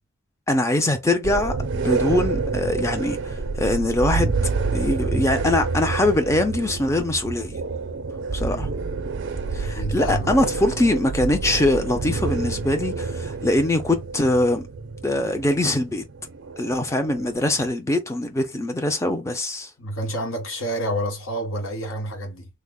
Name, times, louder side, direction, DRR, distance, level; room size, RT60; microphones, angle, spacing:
voice 1, 0.5-4.3 4.7-7.6 8.3-8.7 9.5-14.7 15.0-16.0 16.6-19.7, left 1 dB, 15° left, 0.5 m, -22 dB
sound 1, 1.2-17.7, right 4 dB, 60° right, 0.4 m, -28 dB
voice 2, 8.4-8.8 9.6-10.3 19.8-22.5, right 1 dB, 75° left, 1.2 m, -29 dB
3.2 x 2.0 x 3.6 m
head